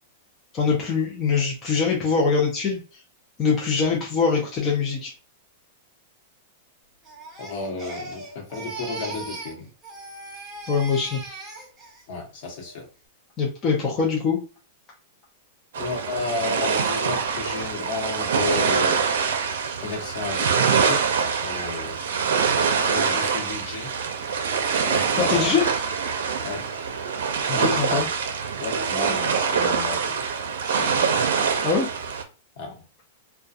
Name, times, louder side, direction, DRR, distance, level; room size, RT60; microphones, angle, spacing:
voice 1, 0.5-3.0 3.4-5.1 10.7-11.2 13.4-14.4 25.2-25.7 27.5-28.1 31.6-31.9, left 5 dB, 25° left, 0.5 m, -23 dB
Crying sobbing, 7.0-9.6 9.8-12.0 12.4-12.8, right 2 dB, 10° right, 0.7 m, -38 dB
voice 2, 7.4-9.7 12.1-12.9 15.7-19.0 19.8-22.0 22.9-23.9 24.8-25.6 26.4-26.6 27.5-28.1 28.6-30.2 30.6-31.1 32.6-32.8, left 4 dB, 50° left, 1.0 m, -33 dB
sound 1, 15.7-32.2, right 6 dB, 80° right, 0.5 m, -24 dB
2.4 x 2.2 x 2.6 m
supercardioid pair, 155°, 0 cm